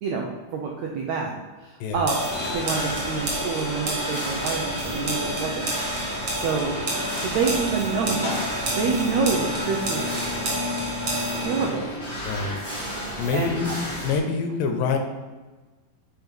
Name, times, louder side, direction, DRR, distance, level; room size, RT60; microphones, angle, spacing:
voice 1, 0.0-1.3 1.6-2.2 2.5-5.7 6.3-6.8 7.2-10.0 11.4-11.8 13.3-13.5, right 5 dB, 80° right, 0 dB, 1.6 m, -27 dB
sound 1, 1.9-9.6, left 2 dB, 55° left, 2.1 m, -40 dB
sound 2, 2.1-11.7, right 1 dB, 50° right, 1.8 m, -29 dB
sound 3, 2.2-14.2, equal, 25° left, 0.6 m, -33 dB
voice 2, 12.2-12.6 13.2-13.7 14.0-15.0, left 5 dB, 80° left, 5 dB, 2.4 m, -25 dB
6.1 x 4.6 x 5.2 m, 1.2 s
omnidirectional pair, 4.0 m